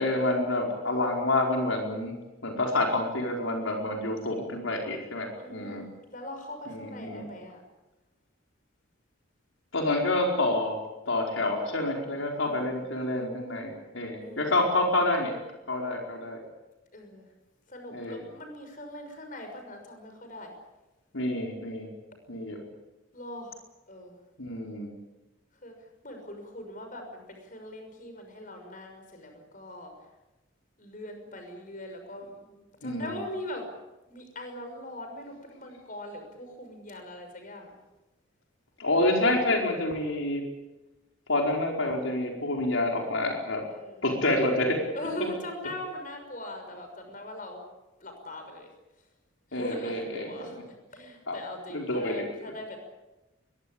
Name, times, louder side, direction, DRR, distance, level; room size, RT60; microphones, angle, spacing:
voice 1, 0.0-2.1 2.4-5.8 6.7-7.2 9.7-10.8 11.1-15.3 15.7-16.4 17.9-18.2 21.1-21.9 22.3-22.6 24.4-24.9 32.8-33.1 38.8-40.5 41.3-43.6 44.0-44.8 49.5-50.3 51.3-51.4 51.7-52.3, left 2 dB, 80° left, 1 dB, 4.8 m, -28 dB
voice 2, 5.4-7.6 12.4-12.8 14.2-14.5 16.9-17.3 17.7-20.5 23.1-23.6 23.9-24.2 25.6-29.9 30.8-33.7 34.1-37.7 43.7-44.0 44.9-47.7 48.0-48.7 49.5-50.6 50.9-52.8, left 1 dB, 40° left, 5 dB, 6.2 m, -41 dB
23.0 x 22.5 x 8.7 m, 1.0 s
head